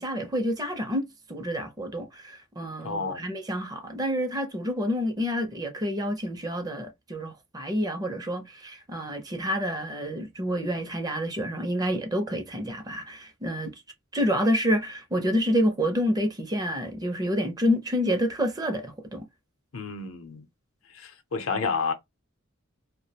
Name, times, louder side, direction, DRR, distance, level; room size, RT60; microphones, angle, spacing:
voice 1, 0.0-13.7 14.1-19.3, equal, 20° right, 0.5 m, -28 dB
voice 2, 2.8-3.2 19.7-20.4 20.9-21.9, left 5 dB, 80° left, 0.6 m, -30 dB
2.3 x 2.1 x 2.7 m
head